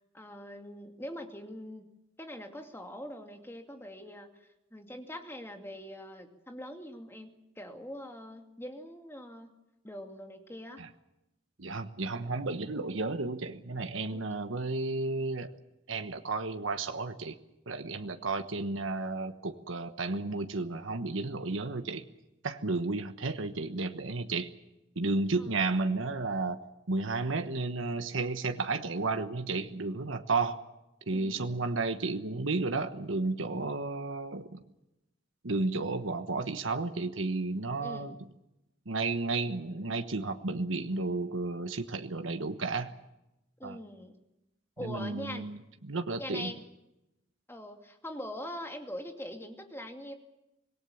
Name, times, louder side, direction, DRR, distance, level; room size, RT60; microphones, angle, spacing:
voice 1, 0.1-1.9 2.2-9.5 9.8-10.8 14.1-14.3 25.4-25.6 31.1-31.7 37.8-38.2 43.6-44.2 44.8-45.5 46.2-46.6 47.5-50.1, left 1 dB, 10° left, 4 dB, 2.4 m, -43 dB
voice 2, 11.6-15.5 15.9-17.4 17.7-22.1 22.4-24.5 24.9-30.6 31.1-34.6 35.4-38.1 38.9-43.0 43.6-43.8 44.8-46.5, right 3 dB, 90° right, 7 dB, 1.2 m, -32 dB
25.5 x 19.5 x 7.2 m, 0.91 s
head